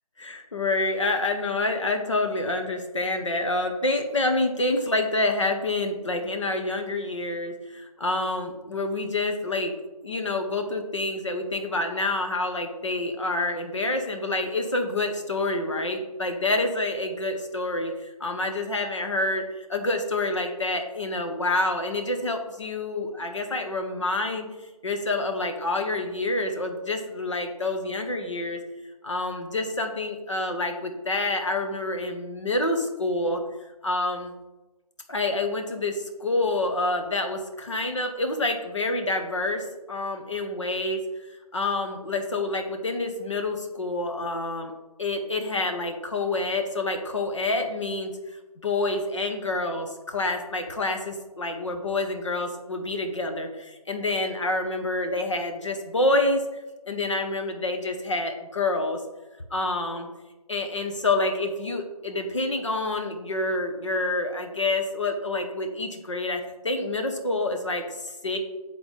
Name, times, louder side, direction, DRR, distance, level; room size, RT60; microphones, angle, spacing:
voice 1, 0.2-9.8 10.0-17.9 18.2-24.5 24.8-28.6 29.0-33.4 33.8-34.3 35.1-41.0 41.5-44.7 45.0-48.1 48.6-56.6 56.9-59.0 59.5-60.1 60.5-68.4, left 2 dB, 50° left, 4 dB, 0.9 m, -27 dB
7.4 x 3.9 x 3.6 m, 1.1 s
figure-of-eight pair, 175°, 20 cm